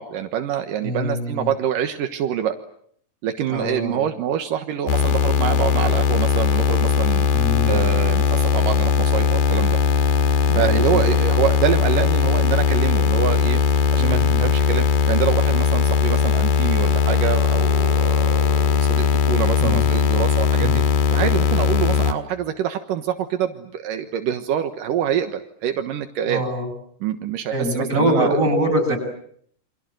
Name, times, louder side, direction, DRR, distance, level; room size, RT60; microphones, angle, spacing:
voice 1, 0.0-2.6 3.2-9.8 10.5-13.6 13.9-20.8 21.1-26.4 27.0-28.4, right 10 dB, 80° right, 7 dB, 2.9 m, -26 dB
voice 2, 0.8-1.5 3.5-4.0 7.3-8.0 10.5-11.0 13.9-14.4 19.6-19.9 20.6-20.8 26.2-26.7 27.5-29.0, equal, 20° right, 3 dB, 7.4 m, -24 dB
sound 1, 4.9-22.1, left 6 dB, 75° left, 3.4 m, -19 dB
29.0 x 26.0 x 7.9 m, 0.66 s
omnidirectional pair, 3.9 m